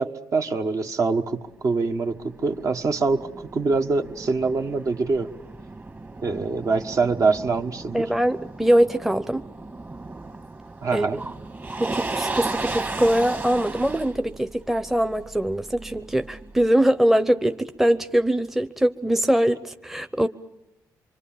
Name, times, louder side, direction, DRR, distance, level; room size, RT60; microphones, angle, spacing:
voice 1, 0.0-3.3 3.5-5.3 6.2-8.1 10.8-11.2, right 4 dB, 50° right, 1.4 m, -24 dB
Motor vehicle (road), 1.6-16.7, right 3 dB, 30° right, 1.9 m, -35 dB
voice 2, 7.9-9.4 10.9-11.2 11.8-20.3, right 1 dB, 5° right, 0.8 m, -22 dB
25.0 x 24.5 x 7.3 m
cardioid pair, 75°, 7 cm